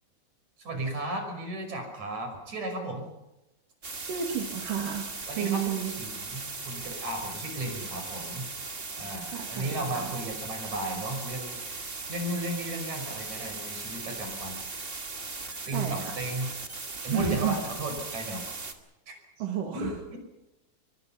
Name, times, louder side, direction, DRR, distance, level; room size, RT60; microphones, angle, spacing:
voice 1, 0.6-3.1 5.3-8.4 9.0-14.8 15.7-16.5 17.0-18.6 19.1-19.2 19.7-20.2, right 1 dB, 60° right, 5 dB, 6.9 m, -35 dB
sound 1, 3.8-18.7, right 3 dB, 25° right, 1.9 m, -38 dB
voice 2, 4.0-5.1 5.3-6.0 9.3-10.1 15.7-16.2 17.1-17.6 19.4-20.0, right 8 dB, 85° right, 2 dB, 3.7 m, -31 dB
25.5 x 23.5 x 5.8 m, 0.94 s
omnidirectional pair, 3.7 m